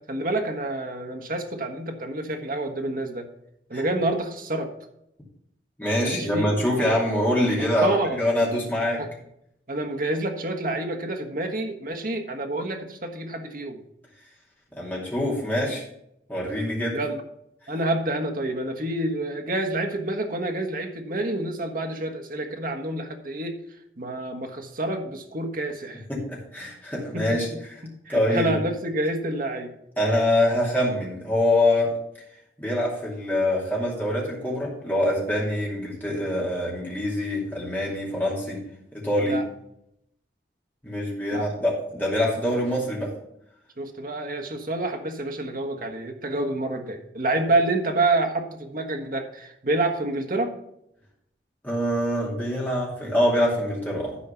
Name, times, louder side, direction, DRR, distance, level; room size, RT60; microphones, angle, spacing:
voice 1, 0.0-3.3 3.7-4.7 6.0-6.5 7.8-8.2 9.0-9.1 9.7-13.8 16.9-17.2 17.7-23.6 24.0-26.0 27.1-27.4 27.8-29.7 39.2-39.4 41.3-41.4 43.8-50.5, right 2 dB, 45° right, 4 dB, 1.2 m, -28 dB
voice 2, 5.8-9.0 14.8-15.8 16.3-17.0 26.1-27.5 28.1-28.5 30.0-31.9 32.6-38.6 38.9-39.4 40.8-43.1 51.6-54.2, left 1 dB, 10° left, -4 dB, 2.7 m, -24 dB
11.5 x 4.7 x 5.8 m, 0.77 s
head